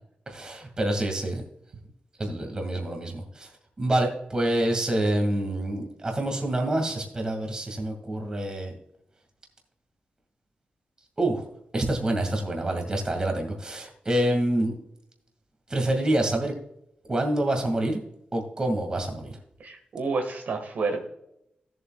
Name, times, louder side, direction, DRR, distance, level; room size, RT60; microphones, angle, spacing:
voice 1, 0.3-1.4 2.2-3.5 3.8-8.7 11.2-11.4 11.7-14.7 15.7-16.5 17.1-18.0 18.3-19.4, right 1 dB, 25° right, 3 dB, 2.1 m, -27 dB
voice 2, 19.6-21.1, right 4 dB, 70° right, 4 dB, 1.6 m, -29 dB
16.5 x 7.5 x 2.4 m, 0.78 s
wide cardioid pair, 150°, 3 cm